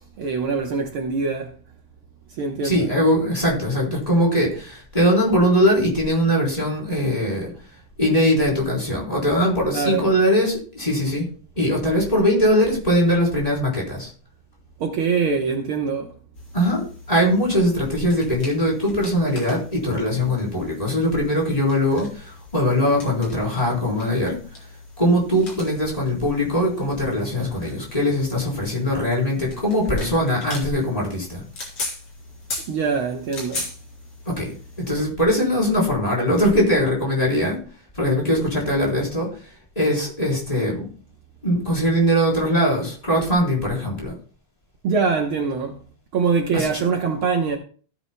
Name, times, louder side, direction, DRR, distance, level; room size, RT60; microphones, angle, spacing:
voice 1, 0.2-1.6 2.3-2.9 9.7-10.1 14.8-16.1 32.7-33.7 44.8-45.8 46.1-47.6, right 5 dB, 80° right, 1.1 m, -23 dB
voice 2, 2.6-7.5 8.0-11.2 11.6-14.1 16.5-24.4 25.0-31.4 34.3-34.5 34.8-37.6 37.9-39.4 39.8-40.9 41.4-44.1 46.5-46.8, equal, 10° left, 3.6 m, -21 dB
sound 1, 16.3-35.1, left 2 dB, 45° left, 4.2 m, -39 dB
15.5 x 9.2 x 2.2 m
omnidirectional pair, 3.9 m